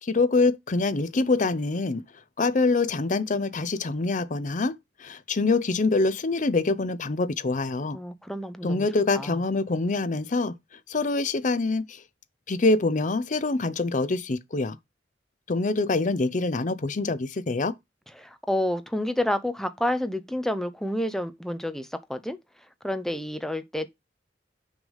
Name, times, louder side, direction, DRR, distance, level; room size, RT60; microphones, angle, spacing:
voice 1, 0.0-2.0 2.4-8.0 8.6-10.5 10.9-12.0 12.5-14.8 15.5-17.7, left 3 dB, 45° left, 0.6 m, -25 dB
voice 2, 7.9-8.9 9.1-9.4 18.2-22.4 22.8-23.9, left 1 dB, ahead, 0.6 m, -29 dB
6.2 x 3.4 x 5.4 m
head